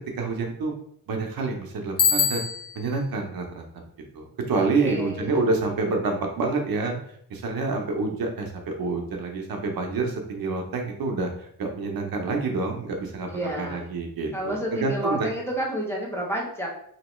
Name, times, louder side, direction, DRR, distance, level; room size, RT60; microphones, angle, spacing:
voice 1, 0.2-0.7 1.1-2.5 2.7-3.6 4.1-6.9 7.3-15.3, right 3 dB, 90° right, 2 dB, 0.8 m, -27 dB
Bicycle bell, 2.0-3.0, left 6 dB, 45° left, 0.6 m, -23 dB
voice 2, 4.5-5.4 13.3-13.9 14.3-16.7, right 1 dB, 5° left, -3 dB, 0.7 m, -30 dB
3.0 x 2.9 x 3.0 m, 0.65 s
wide cardioid pair, 165°, 34 cm